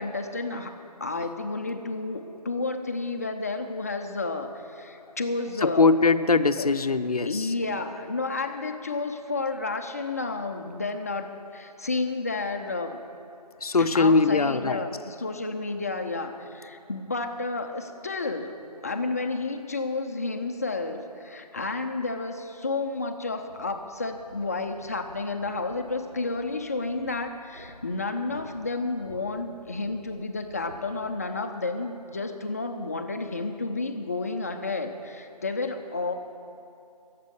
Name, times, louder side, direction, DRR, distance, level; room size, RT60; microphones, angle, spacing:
voice 1, 0.0-5.9 6.6-6.7 7.2-13.0 13.8-18.6 18.8-36.1, left 3 dB, 25° left, 5 dB, 0.5 m, -31 dB
voice 2, 5.6-7.5 13.6-14.8, left 4 dB, 60° left, 11 dB, 0.6 m, -21 dB
sound 1, 23.5-31.2, right 1 dB, 75° right, 1.7 m, -51 dB
15.5 x 7.5 x 8.0 m, 2.7 s
figure-of-eight pair, 155°, 21 cm